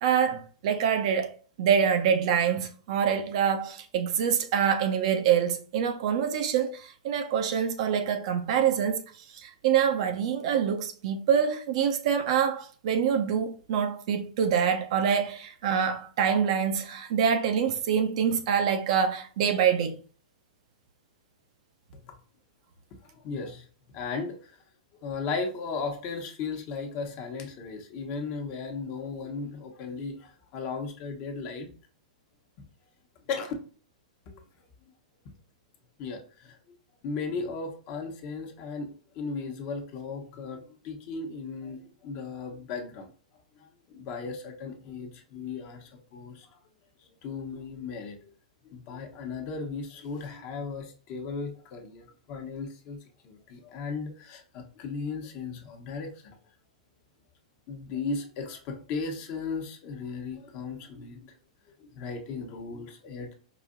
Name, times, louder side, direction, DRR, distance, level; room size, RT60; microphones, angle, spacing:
voice 1, 0.0-1.3 1.6-9.0 9.3-20.0, right 8 dB, 60° right, 0.6 m, -25 dB
voice 2, 23.1-23.7 23.9-24.6 25.0-31.7 33.3-33.5 34.3-34.4 36.0-36.6 37.0-43.1 43.6-46.5 47.2-48.2 48.7-53.0 53.2-56.4 57.7-61.3 61.8-63.4, left 4 dB, 40° left, 1.0 m, -36 dB
4.8 x 2.7 x 2.5 m
hypercardioid pair, 125°, 4 cm